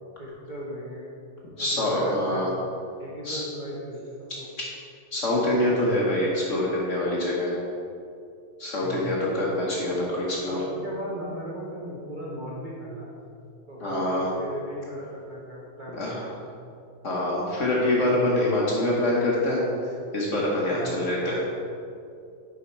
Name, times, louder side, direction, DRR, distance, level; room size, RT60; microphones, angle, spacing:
voice 1, 0.2-1.2 1.5-2.5 3.0-4.5 8.8-9.3 10.5-13.2 13.7-16.5 20.7-21.4, equal, 55° right, -5 dB, 0.5 m, -37 dB
voice 2, 1.6-2.5 3.2-3.4 4.3-4.7 5.1-7.6 8.6-10.6 13.8-14.3 16.0-16.2 17.0-19.6 20.1-21.4, left 1 dB, 50° left, -4 dB, 1.0 m, -25 dB
6.9 x 5.2 x 4.4 m, 2.5 s
omnidirectional pair, 2.3 m